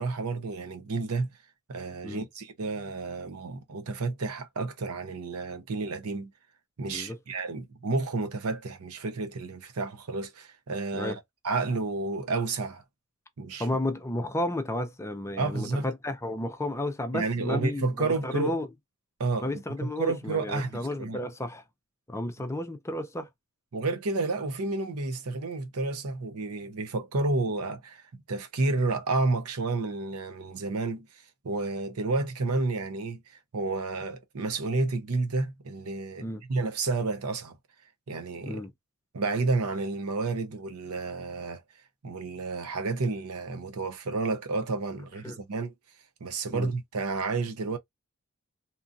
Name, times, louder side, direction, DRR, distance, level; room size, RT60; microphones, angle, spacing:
voice 1, 0.0-1.3 1.7-6.3 6.8-11.1 11.4-12.8 13.4-13.6 15.4-15.9 17.1-18.5 19.2-19.6 20.0-21.2 23.7-37.6 38.1-38.6 39.1-41.6 42.0-45.7 46.2-47.8, right 3 dB, 80° right, 0.7 m, -31 dB
voice 2, 13.6-18.7 19.4-21.6 22.1-23.3 36.2-36.4 38.5-38.7 45.2-45.4 46.5-46.7, left 1 dB, 15° left, 0.5 m, -32 dB
2.9 x 2.5 x 2.5 m
head